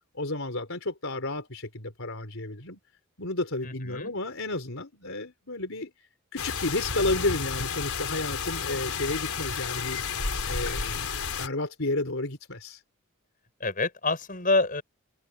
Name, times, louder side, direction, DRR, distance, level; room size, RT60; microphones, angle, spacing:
voice 1, 0.1-2.8 3.2-5.9 6.3-11.1 11.4-12.8, left 2 dB, 65° left, 3.9 m, -32 dB
voice 2, 3.6-4.1 13.6-14.8, left 3 dB, 40° left, 7.2 m, -27 dB
sound 1, 6.4-11.5, left 5 dB, 85° left, 4.6 m, -31 dB
open air
head